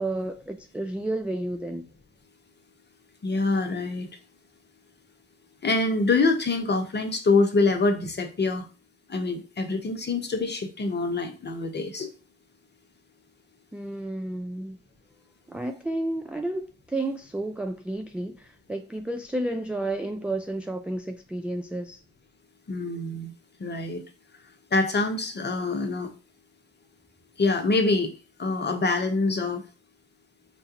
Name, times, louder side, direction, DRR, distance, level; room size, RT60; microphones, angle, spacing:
voice 1, 0.0-1.9 13.7-14.8 15.5-22.0, right 1 dB, 5° right, 0.3 m, -31 dB
voice 2, 3.2-4.1 5.6-8.6 9.1-12.1 22.7-23.3 23.6-24.0 24.7-26.1 27.4-28.1 28.4-29.6, left 3 dB, 30° left, 0.9 m, -25 dB
4.2 x 2.3 x 2.8 m
hypercardioid pair, 45°, 34 cm